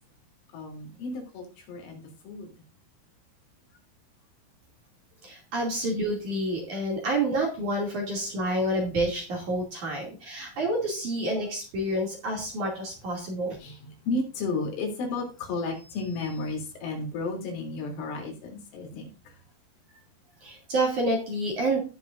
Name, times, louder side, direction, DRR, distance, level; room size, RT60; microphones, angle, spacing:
voice 1, 0.5-2.5 13.6-19.3, left 3 dB, 70° left, 1 dB, 5.5 m, -33 dB
voice 2, 5.2-13.6 20.4-21.8, right 1 dB, 45° right, 0 dB, 3.4 m, -28 dB
17.5 x 7.0 x 2.6 m, 0.33 s
omnidirectional pair, 5.8 m